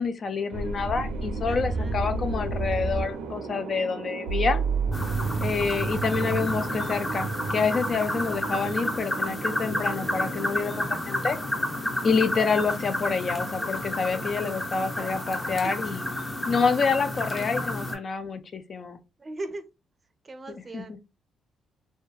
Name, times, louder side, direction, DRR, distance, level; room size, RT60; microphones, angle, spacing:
voice 1, 0.0-4.6 5.4-11.4 12.0-16.0 16.5-19.0 20.7-20.8, left 5 dB, 45° left, 0.4 m, -27 dB
sound 1, 0.5-11.0, right 4 dB, 90° right, 0.5 m, -31 dB
voice 2, 1.5-2.0 8.3-8.7 14.9-15.8 19.2-19.7 20.2-21.0, right 2 dB, 30° right, 0.5 m, -41 dB
sound 2, 4.9-17.9, left 1 dB, 20° left, 0.7 m, -31 dB
2.7 x 2.2 x 2.3 m
cardioid pair, 90°, 0 cm